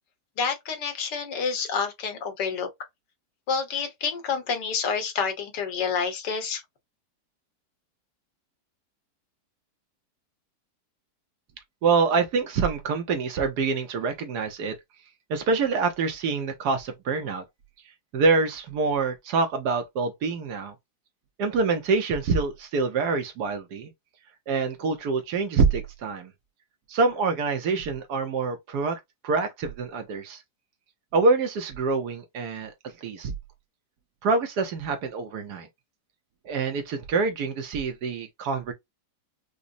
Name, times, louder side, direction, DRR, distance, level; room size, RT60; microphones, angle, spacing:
voice 1, 0.4-2.7 3.5-6.6, left 5 dB, 80° left, 1.6 m, -28 dB
voice 2, 11.8-14.7 15.3-17.4 18.1-20.7 21.4-23.9 24.5-26.3 26.9-30.4 31.1-33.3 34.2-35.7 36.4-38.7, right 4 dB, 70° right, 1.3 m, -26 dB
4.9 x 2.0 x 2.5 m
omnidirectional pair, 1.8 m